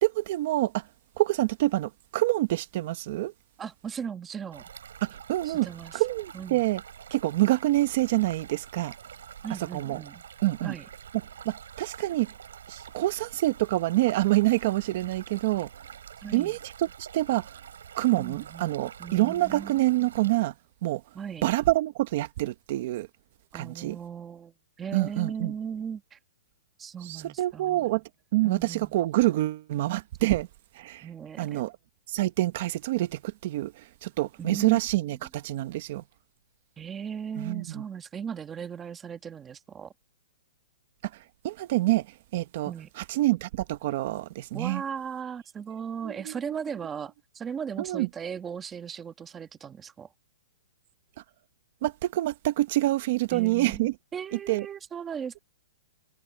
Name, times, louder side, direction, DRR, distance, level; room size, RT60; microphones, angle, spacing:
voice 1, 0.0-0.8 1.2-3.3 5.0-5.7 5.9-6.8 7.1-8.9 9.7-10.0 10.4-10.7 11.4-12.3 12.7-15.7 16.3-16.9 17.1-17.5 18.0-20.5 20.8-21.0 21.4-23.1 23.5-24.0 24.9-25.5 27.0-28.0 28.3-30.5 30.7-31.0 31.4-31.7 32.1-36.0 37.4-37.8 41.4-42.1 42.3-44.8 46.0-46.3 47.8-48.1 51.8-53.9 54.3-54.7, right 17 dB, 40° right, 1.1 m, -26 dB
voice 2, 3.6-4.6 5.4-6.0 6.3-6.6 9.4-10.2 10.6-10.8 16.2-16.6 18.1-19.8 21.1-21.5 23.5-26.2 26.8-27.9 28.4-28.9 31.0-31.6 34.4-34.8 36.8-39.9 42.6-42.9 44.5-50.1 53.3-55.4, right 7 dB, 10° right, 1.4 m, -37 dB
Stream, 4.5-20.4, right 8 dB, 75° right, 7.7 m, -46 dB
hypercardioid pair, 170°, 0 cm